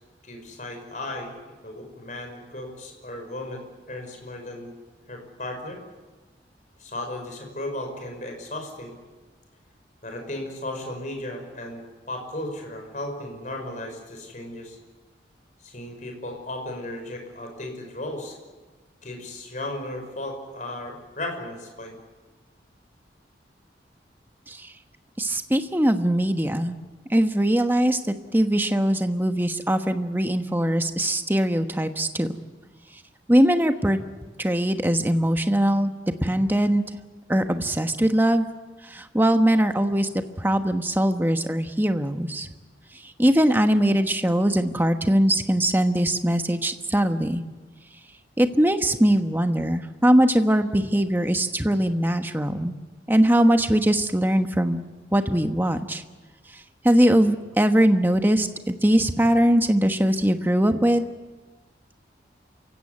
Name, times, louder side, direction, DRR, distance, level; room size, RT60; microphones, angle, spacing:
voice 1, 0.2-1.3 1.6-4.7 5.1-5.8 6.8-8.9 10.0-14.8 15.6-18.4 19.0-22.0, left 1 dB, 45° left, 3 dB, 5.8 m, -35 dB
voice 2, 25.2-26.8 27.1-28.0 28.3-32.3 33.3-34.0 34.4-35.9 36.2-36.8 37.3-38.5 38.8-40.1 40.4-42.5 43.0-47.4 48.4-52.7 53.1-56.0 56.5-61.0, right 1 dB, 10° right, 7 dB, 1.2 m, -21 dB
28.0 x 16.5 x 9.6 m, 1.3 s
head